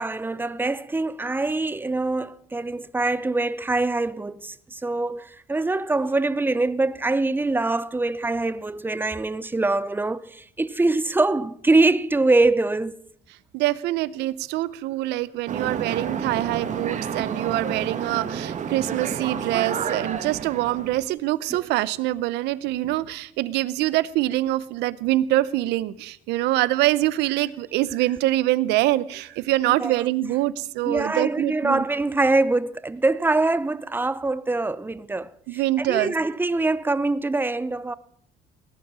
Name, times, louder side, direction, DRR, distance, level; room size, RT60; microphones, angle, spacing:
voice 1, 0.0-12.9 21.5-21.7 29.8-30.0 30.8-37.9, right 2 dB, 10° right, 0.7 m, -24 dB
voice 2, 13.5-31.8 35.5-36.1, right 16 dB, 90° right, 0.7 m, -24 dB
sound 1, 15.5-21.1, right 7 dB, 45° right, 1.8 m, -30 dB
19.0 x 10.5 x 6.2 m
cardioid pair, 110°, 17 cm